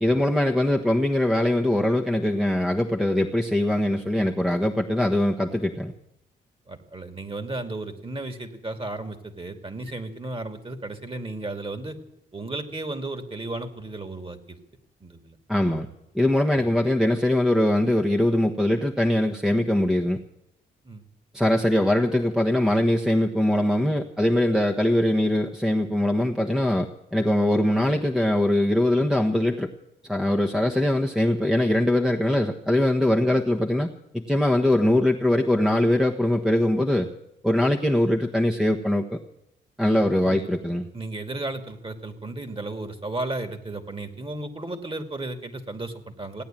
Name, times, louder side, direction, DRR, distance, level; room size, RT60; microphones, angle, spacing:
voice 1, 0.0-5.9 15.5-15.9 16.1-20.2 21.3-29.7 30.1-37.1 37.4-39.2 39.8-40.9, left 1 dB, 5° right, 1 dB, 1.3 m, -22 dB
voice 2, 6.7-12.0 12.3-14.6 15.0-15.3 16.6-16.7 20.8-21.0 40.2-40.5 40.9-46.4, right 2 dB, 25° right, 8 dB, 2.4 m, -34 dB
17.0 x 9.3 x 9.1 m, 0.83 s
supercardioid pair, 50°, 20 cm